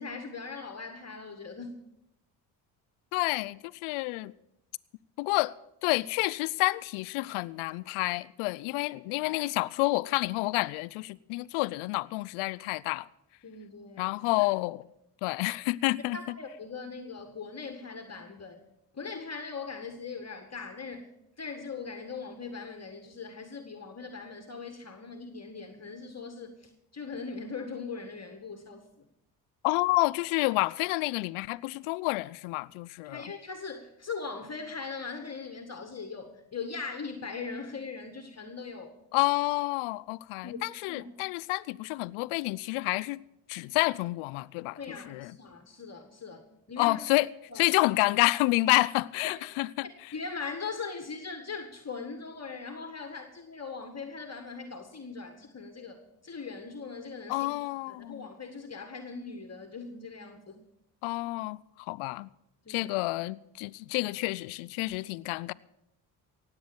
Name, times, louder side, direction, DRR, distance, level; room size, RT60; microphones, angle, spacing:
voice 1, 0.0-1.7 9.2-9.3 13.4-14.1 16.1-18.6 18.9-21.1 21.4-29.1 33.0-39.0 40.4-41.1 44.7-46.4 46.7-47.0 47.5-47.7 49.2-49.4 50.1-57.5 57.9-60.6 62.7-62.9, left 4 dB, 30° left, 1.7 m, -40 dB
voice 2, 3.1-4.3 5.2-5.5 5.8-13.1 14.0-14.9 15.2-16.4 29.6-33.2 39.1-43.2 43.5-44.8 45.1-45.3 46.8-47.3 47.6-49.9 57.3-58.3 61.0-62.3 62.7-65.5, left 22 dB, 80° left, 0.6 m, -29 dB
18.0 x 8.0 x 7.0 m
hypercardioid pair, 55°, 49 cm